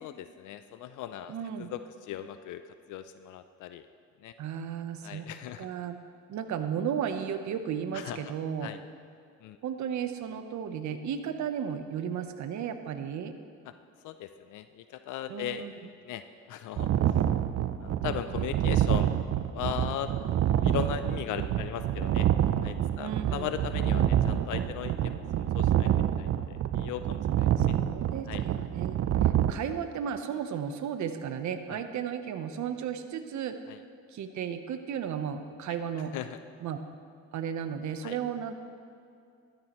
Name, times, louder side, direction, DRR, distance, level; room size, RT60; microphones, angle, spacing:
voice 1, 0.0-2.6 2.9-3.8 4.2-4.3 5.0-5.7 7.9-8.2 8.6-8.8 9.4-9.6 13.7-13.8 14.0-15.7 16.0-16.2 16.5-16.9 17.8-19.1 19.5-20.1 20.6-22.3 22.6-27.7 28.3-28.4 31.7-31.8 33.7-33.8 36.1-36.4 38.0-38.2, left 11 dB, 80° left, 10 dB, 0.5 m, -38 dB
voice 2, 1.3-1.7 4.4-5.3 5.6-6.0 6.3-8.7 9.6-13.3 15.3-15.7 18.5-19.0 23.0-23.5 27.6-28.9 29.2-33.6 34.1-36.1 36.6-36.8 37.3-38.5, right 8 dB, 70° right, 8 dB, 0.9 m, -34 dB
sound 1, 16.8-29.5, right 11 dB, 55° right, 0.6 m, -27 dB
13.5 x 13.0 x 3.0 m, 2.4 s
cardioid pair, 90°, 30 cm